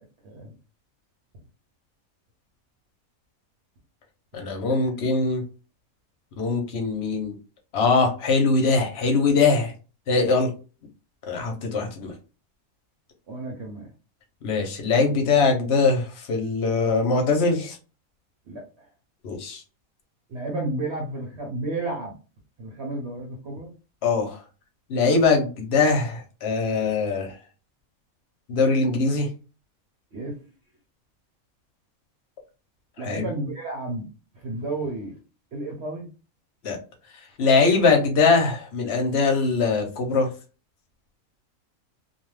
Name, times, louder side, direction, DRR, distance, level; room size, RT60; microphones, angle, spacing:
voice 1, 4.3-5.4 6.4-7.3 7.7-9.7 10.1-10.5 11.3-12.1 14.4-17.8 19.2-19.6 24.0-24.4 24.9-27.3 28.5-29.3 33.0-33.3 36.6-36.8 37.4-40.3, left 4 dB, 55° left, 2 dB, 0.9 m, -22 dB
voice 2, 13.3-13.9 18.5-18.6 20.3-22.1 22.6-23.7 30.1-30.4 33.0-34.0 34.3-35.2 35.5-36.1, right 2 dB, 55° right, -1 dB, 0.9 m, -32 dB
2.6 x 2.3 x 3.1 m, 0.34 s
omnidirectional pair, 1.5 m